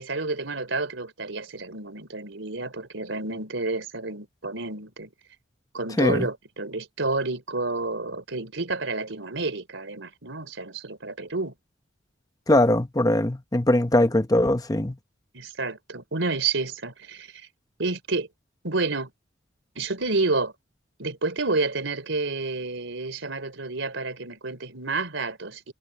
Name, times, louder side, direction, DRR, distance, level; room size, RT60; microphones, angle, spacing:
voice 1, 0.0-5.1 5.7-11.5 15.3-17.5 17.8-18.3 18.6-19.1 19.7-20.5 21.0-25.7, right 3 dB, 85° right, 3.4 m, -29 dB
voice 2, 6.0-6.3 12.5-15.0, left 1 dB, 20° left, 0.9 m, -21 dB
head